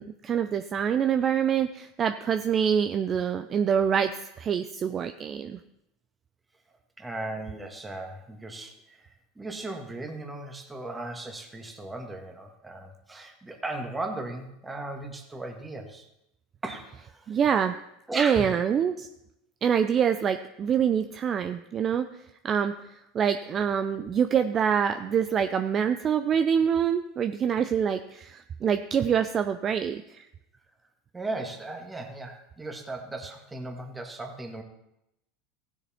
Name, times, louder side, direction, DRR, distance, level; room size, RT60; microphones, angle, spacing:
voice 1, 0.0-5.6 17.3-17.7 18.1-19.1 19.6-22.1 22.4-22.7 23.1-30.3, right 8 dB, 35° right, 8 dB, 0.6 m, -25 dB
voice 2, 7.0-16.1 16.6-17.4 18.1-18.5 31.1-34.6, right 2 dB, 15° right, 3 dB, 1.9 m, -37 dB
16.0 x 6.7 x 4.4 m, 0.84 s
hypercardioid pair, 95°, 0 cm